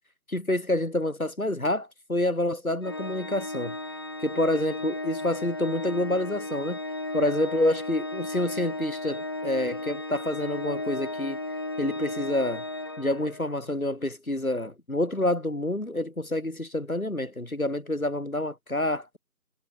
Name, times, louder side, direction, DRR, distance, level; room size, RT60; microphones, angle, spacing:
voice 1, 0.3-3.8 4.2-6.8 7.1-11.4 11.8-12.6 13.0-19.2, left 1 dB, 55° left, 7.5 m, -28 dB
Organ, 2.8-13.6, left 2 dB, 15° left, 5.4 m, -34 dB
figure-of-eight pair, 175°, 50 cm